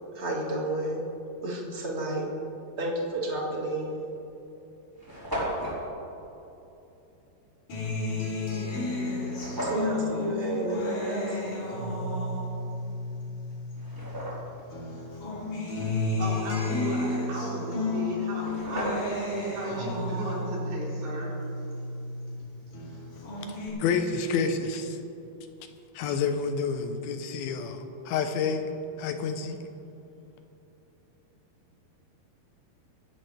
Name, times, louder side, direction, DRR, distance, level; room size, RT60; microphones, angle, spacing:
voice 1, 0.1-1.0 1.4-2.2 2.8-4.1 9.6-11.4, right 1 dB, 50° right, -3 dB, 0.7 m, -31 dB
sound 1, 4.4-4.5 4.6-4.7 4.9-5.8 9.3-9.9 12.8-12.9 13.5-14.6 18.0-18.1 18.3-19.3, equal, 5° right, 3.3 m, -34 dB
Acoustic guitar, 7.7-14.3 14.7-22.3 22.7-23.7, left 2 dB, 55° left, 4.6 m, -32 dB
voice 2, 16.2-21.3, right 1 dB, 70° right, -6 dB, 5.7 m, -36 dB
voice 3, 23.5-25.0 25.9-28.7 29.0-29.6, left 5 dB, 75° left, 7 dB, 2.6 m, -29 dB
24.5 x 12.0 x 3.4 m, 2.9 s
omnidirectional pair, 4.8 m